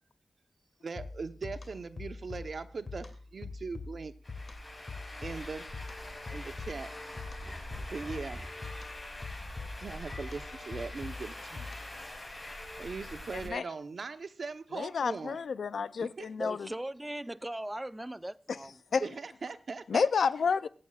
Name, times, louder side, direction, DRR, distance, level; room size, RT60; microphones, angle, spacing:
voice 1, 0.8-4.1 5.2-5.7 6.3-6.9 7.9-8.5 9.8-12.1 12.8-15.4 16.0-16.3 19.0-20.1, right 4 dB, 70° right, 0.9 m, -40 dB
sound 1, 1.0-12.1, left 3 dB, 55° left, 2.6 m, -44 dB
sound 2, 4.2-13.5, left 1 dB, 30° left, 5.6 m, -44 dB
sound 3, 7.4-8.7 10.3-10.9, right 1 dB, 35° right, 1.4 m, -47 dB
voice 2, 14.7-16.7 18.5-18.6 18.9-19.0 19.9-20.7, left 5 dB, 85° left, 0.4 m, -30 dB
voice 3, 16.4-18.7, right 1 dB, 15° right, 0.5 m, -39 dB
24.5 x 8.7 x 2.4 m
cardioid pair, 50°, 0 cm